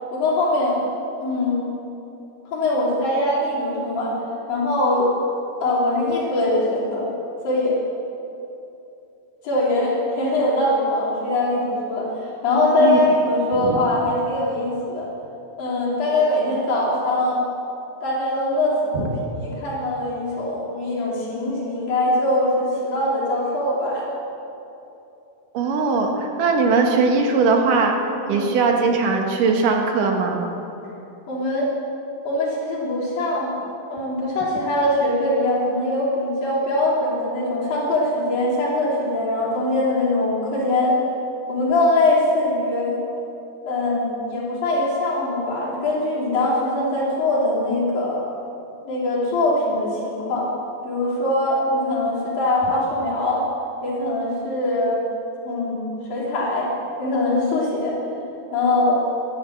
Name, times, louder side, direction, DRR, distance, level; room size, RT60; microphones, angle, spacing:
voice 1, 0.1-0.8 1.2-1.7 2.5-4.1 4.5-5.1 5.6-7.0 7.4-7.8 9.4-12.1 12.4-15.1 15.6-17.4 18.0-19.1 19.3-24.0 28.3-28.5 31.3-31.7 32.3-33.6 33.9-41.0 41.5-42.9 43.7-48.2 48.9-50.5 50.8-53.4 53.8-55.1 55.4-56.7 57.0-58.0 58.5-59.0, left 1 dB, 80° left, -7 dB, 5.2 m, -22 dB
voice 2, 25.5-28.0 28.3-30.5, right 4 dB, 70° right, 2 dB, 2.9 m, -20 dB
13.5 x 11.0 x 7.3 m, 2.8 s
omnidirectional pair, 4.0 m